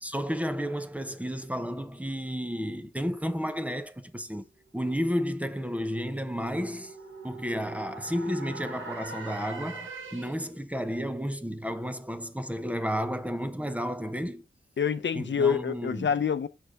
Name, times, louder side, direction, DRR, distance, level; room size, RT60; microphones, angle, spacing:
voice 1, 0.0-4.4 4.7-6.9 7.2-14.4 15.1-16.1, equal, 5° right, 0.7 m, -32 dB
sound 1, 4.4-10.6, right 3 dB, 70° right, 1.5 m, -43 dB
voice 2, 14.8-16.5, left 7 dB, 60° left, 0.6 m, -26 dB
6.3 x 4.6 x 3.5 m
wide cardioid pair, 95°, 21 cm